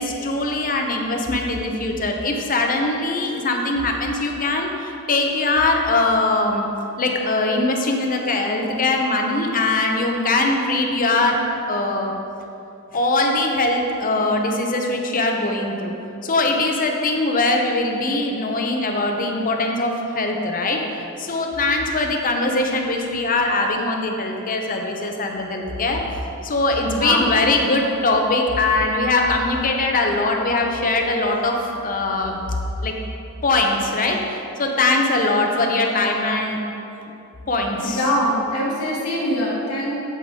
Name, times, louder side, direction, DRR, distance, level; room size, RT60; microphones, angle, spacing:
voice 1, 0.0-6.7 7.0-11.4 11.7-12.2 12.9-15.9 16.2-26.0 26.4-32.4 32.8-32.9 33.4-36.6 37.5-38.0, left 2 dB, 40° left, 2 dB, 0.8 m, -21 dB
voice 2, 26.9-27.3 37.8-40.0, equal, 75° left, -5 dB, 1.7 m, -23 dB
8.4 x 7.9 x 3.7 m, 2.8 s
head